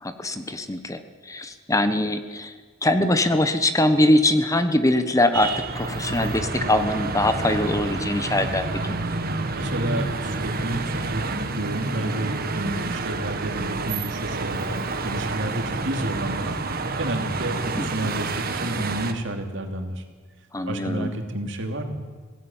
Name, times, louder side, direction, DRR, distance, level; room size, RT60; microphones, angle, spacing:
voice 1, 0.0-1.0 1.3-2.5 2.8-8.6 17.8-18.1 20.5-21.1, left 1 dB, 15° left, 9 dB, 1.1 m, -22 dB
sound 1, 5.3-19.1, right 3 dB, 50° right, 1.7 m, -29 dB
voice 2, 9.5-20.1 20.7-22.0, right 1 dB, 65° right, 4 dB, 2.8 m, -31 dB
25.5 x 17.5 x 7.3 m, 1.5 s
head